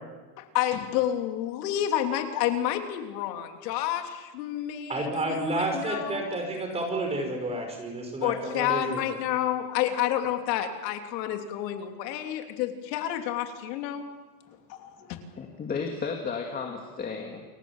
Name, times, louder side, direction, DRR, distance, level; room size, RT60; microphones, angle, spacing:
voice 1, 0.4-6.3 8.2-14.1 14.7-15.2, left 11 dB, 85° left, 5 dB, 3.3 m, -29 dB
voice 2, 4.9-9.0, right 2 dB, 15° right, 3 dB, 5.4 m, -30 dB
voice 3, 15.4-17.4, left 5 dB, 20° left, 2 dB, 2.2 m, -33 dB
29.5 x 22.5 x 7.4 m, 1.3 s
cardioid pair, 175°, 48 cm